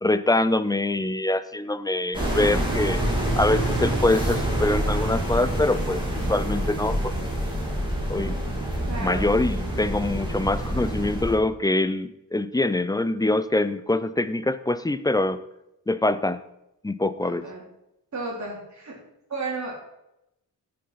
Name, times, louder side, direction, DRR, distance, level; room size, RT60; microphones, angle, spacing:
voice 1, 0.0-3.0 3.4-6.0 6.3-7.1 8.1-8.4 9.0-15.4 15.9-16.4 16.8-17.4, left 2 dB, 10° left, 13 dB, 0.3 m, -24 dB
sound 1, 2.1-11.4, right 1 dB, 10° right, 2.3 m, -26 dB
voice 2, 8.9-9.2 17.2-17.6 18.1-18.9 19.3-19.8, right 3 dB, 45° right, -3 dB, 3.1 m, -33 dB
12.5 x 5.5 x 5.6 m, 0.87 s
wide cardioid pair, 165°, 40 cm